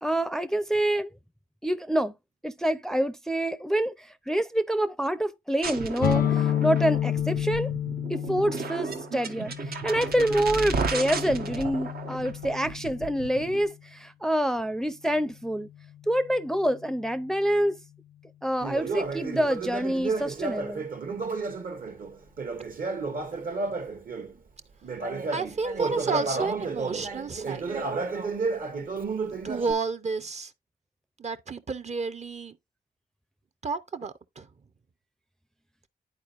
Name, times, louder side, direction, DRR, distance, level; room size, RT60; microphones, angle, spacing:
voice 1, 0.0-1.1 1.6-2.1 2.4-7.7 8.1-15.7 16.1-17.8 18.4-20.9, right 1 dB, 5° left, 0.5 m, -27 dB
sound 1, 5.6-13.6, right 5 dB, 75° right, 0.9 m, -34 dB
sound 2, 6.0-13.6, left 11 dB, 80° left, 0.5 m, -30 dB
Conversation, 18.6-24.3 24.8-29.7, right 4 dB, 60° right, 1.2 m, -32 dB
voice 2, 25.3-27.6 29.4-30.5 31.2-32.6 33.6-34.5, right 4 dB, 45° right, 0.7 m, -31 dB
10.5 x 4.3 x 2.5 m
cardioid pair, 65°, 16 cm